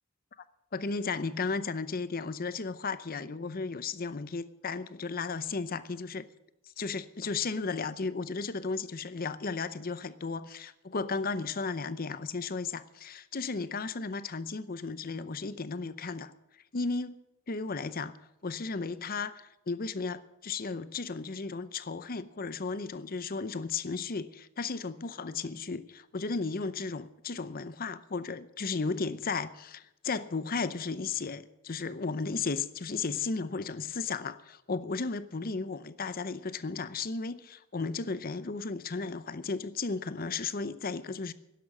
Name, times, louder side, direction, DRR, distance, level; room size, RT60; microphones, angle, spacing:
voice 1, 0.7-6.3 6.8-16.3 16.7-17.2 17.5-18.1 18.4-41.3, left 4 dB, 45° left, 15 dB, 0.7 m, -34 dB
12.0 x 11.0 x 8.6 m, 0.92 s
head